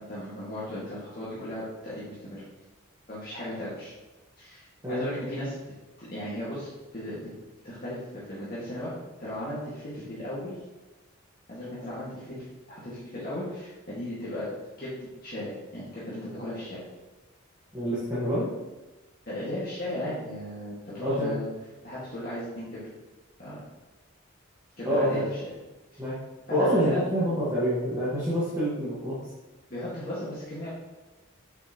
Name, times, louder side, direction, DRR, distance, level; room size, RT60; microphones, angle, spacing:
voice 1, 0.0-2.4 3.1-3.9 4.4-5.5 6.0-6.7 6.9-7.2 7.6-8.9 9.2-10.5 11.5-14.5 14.8-16.9 19.3-21.5 21.8-22.9 23.4-23.6 24.8-25.4 25.9-26.0 26.5-27.0 29.7-30.7, left 1 dB, 45° left, -10 dB, 2.1 m, -36 dB
voice 2, 17.7-18.5 21.0-21.3 24.8-25.3 26.0-26.2 26.5-29.2, equal, 15° right, -11 dB, 1.7 m, -26 dB
8.0 x 6.1 x 3.1 m, 1.1 s
head